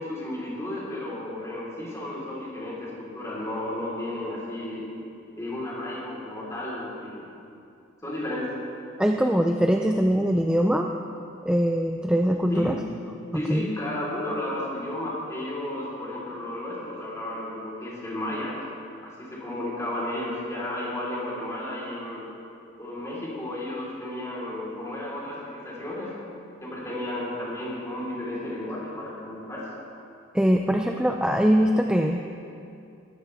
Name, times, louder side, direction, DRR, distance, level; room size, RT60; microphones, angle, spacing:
voice 1, 0.0-4.8 5.3-7.2 8.0-8.5 12.5-12.7 13.3-18.5 19.0-22.2 22.8-26.1 26.6-29.7, left 1 dB, 15° left, -6 dB, 4.1 m, -33 dB
voice 2, 9.0-10.9 11.4-12.7 13.3-13.7 30.3-32.3, equal, 5° right, 3 dB, 0.4 m, -22 dB
21.5 x 13.5 x 3.5 m, 2.6 s
head